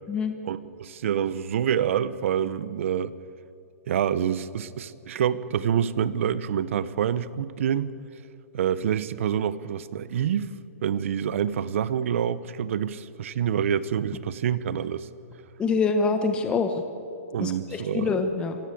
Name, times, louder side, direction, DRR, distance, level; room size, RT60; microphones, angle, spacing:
voice 1, 0.5-3.1 3.9-7.9 8.5-10.5 10.8-15.1 17.3-18.1, right 9 dB, 55° right, 16 dB, 1.0 m, -27 dB
voice 2, 15.6-16.8 17.4-18.6, left 4 dB, 10° left, 7 dB, 1.1 m, -25 dB
24.0 x 17.0 x 8.6 m, 2.6 s
hypercardioid pair, 160°, 8 cm